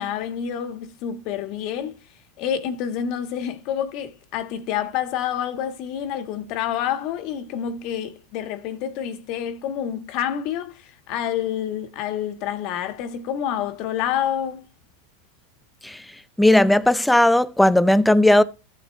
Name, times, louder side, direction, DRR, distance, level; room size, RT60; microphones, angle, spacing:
voice 1, 0.0-2.0 2.4-14.7, left 9 dB, 55° left, 1.5 m, -28 dB
voice 2, 16.4-18.4, left 1 dB, 5° left, 0.7 m, -16 dB
14.5 x 7.9 x 3.2 m
hypercardioid pair, 115°, 0 cm